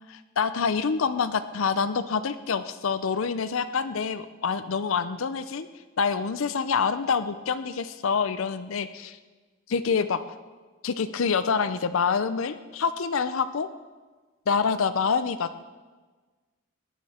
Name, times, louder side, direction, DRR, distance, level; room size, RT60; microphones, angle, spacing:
voice 1, 0.1-5.7 6.0-9.2 9.7-10.2 10.8-13.7 14.5-15.6, left 5 dB, 65° left, 11 dB, 0.5 m, -26 dB
18.0 x 11.0 x 4.3 m, 1.3 s
head